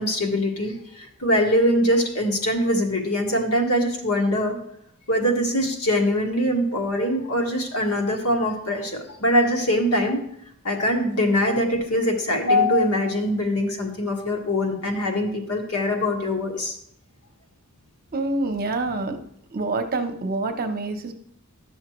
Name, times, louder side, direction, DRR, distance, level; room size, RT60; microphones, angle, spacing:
voice 1, 0.0-4.6 5.1-10.2 10.6-16.8, left 1 dB, 75° left, 1 dB, 1.5 m, -23 dB
voice 2, 18.1-19.2 19.5-21.1, right 2 dB, 45° right, 5 dB, 0.8 m, -26 dB
11.0 x 6.4 x 3.0 m, 0.71 s
head